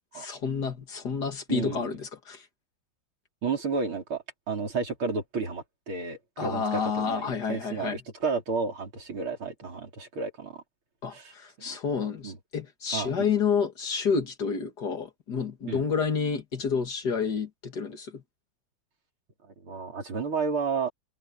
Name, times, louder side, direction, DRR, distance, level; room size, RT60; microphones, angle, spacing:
voice 1, 0.1-2.4 6.4-8.0 11.0-18.2, left 6 dB, 55° left, 2.4 m, -29 dB
voice 2, 1.5-1.9 3.4-10.6 11.1-11.8 12.2-12.4 12.9-13.3 15.7-15.8 19.6-20.9, right 4 dB, 85° right, 5.0 m, -32 dB
omnidirectional pair, 2.2 m